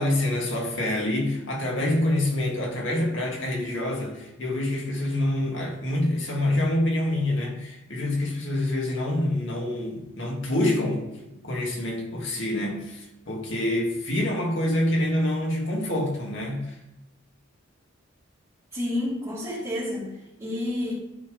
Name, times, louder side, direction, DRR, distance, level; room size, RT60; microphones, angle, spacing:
voice 1, 0.0-11.1 11.4-16.8, left 1 dB, 65° left, 2.0 m, -26 dB
voice 2, 18.7-20.1 20.4-20.9, left 1 dB, 15° right, 3.3 m, -29 dB
12.5 x 4.5 x 5.0 m
head